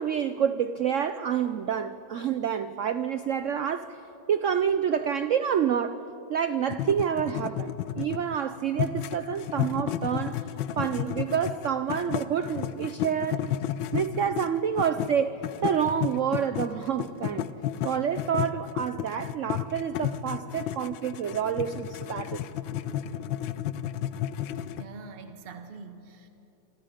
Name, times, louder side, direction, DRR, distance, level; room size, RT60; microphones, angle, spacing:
voice 1, 0.0-4.0 4.3-6.0 6.3-10.4 10.8-13.5 13.9-17.5 17.8-22.4, right 8 dB, 85° right, 12 dB, 0.6 m, -28 dB
sound 1, 6.7-8.4 8.7-15.1 15.4-24.8, left 11 dB, 80° left, 1.5 m, -32 dB
voice 2, 24.8-26.3, right 4 dB, 35° right, 7 dB, 1.4 m, -44 dB
27.5 x 25.0 x 5.1 m, 2.9 s
omnidirectional pair, 2.1 m